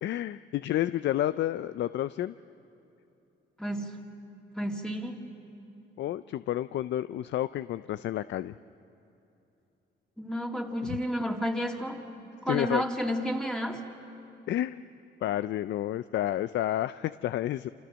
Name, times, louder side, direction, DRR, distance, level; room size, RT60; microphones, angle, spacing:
voice 1, 0.0-2.3 6.0-8.5 10.8-11.0 12.5-12.8 14.5-14.8 15.2-17.7, left 13 dB, 65° left, 14 dB, 0.5 m, -30 dB
voice 2, 3.6-4.1 4.5-5.2 10.2-12.0 12.4-13.8, equal, 5° left, 1 dB, 2.6 m, -31 dB
28.5 x 27.0 x 6.3 m, 2.8 s
cardioid pair, 90°, 20 cm